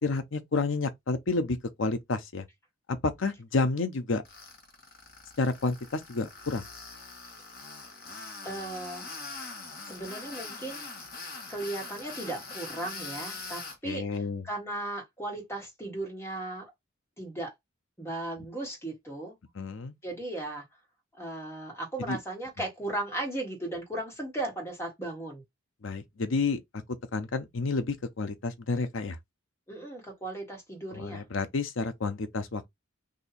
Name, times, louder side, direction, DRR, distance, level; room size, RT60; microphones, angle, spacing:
voice 1, 0.0-2.5 2.9-4.2 5.4-6.6 13.8-14.4 19.5-19.9 22.1-22.2 25.8-26.8 27.1-29.2 30.9-32.7, left 3 dB, 65° left, 0.7 m, -30 dB
Tools, 4.2-13.8, left 3 dB, 45° left, 1.4 m, -43 dB
voice 2, 8.4-9.0 9.8-10.9 11.5-16.6 17.2-17.5 18.0-19.3 20.0-20.6 21.2-25.4 29.7-31.2, right 2 dB, 10° left, 1.5 m, -36 dB
2.8 x 2.7 x 4.1 m
head